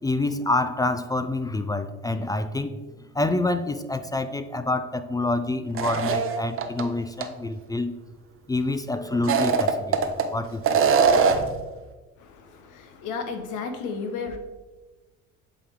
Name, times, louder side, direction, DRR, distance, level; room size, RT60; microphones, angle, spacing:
voice 1, 0.0-2.8 3.1-8.0 8.5-10.6, left 2 dB, 10° left, 10 dB, 0.3 m, -27 dB
sound 1, 5.7-6.8 7.2-7.3 9.1-10.2 10.6-11.5, right 6 dB, 40° right, 0.7 m, -21 dB
voice 2, 12.2-14.4, left 5 dB, 65° left, 7 dB, 1.0 m, -33 dB
8.2 x 3.4 x 3.6 m, 1.2 s
hypercardioid pair, 65°, 32 cm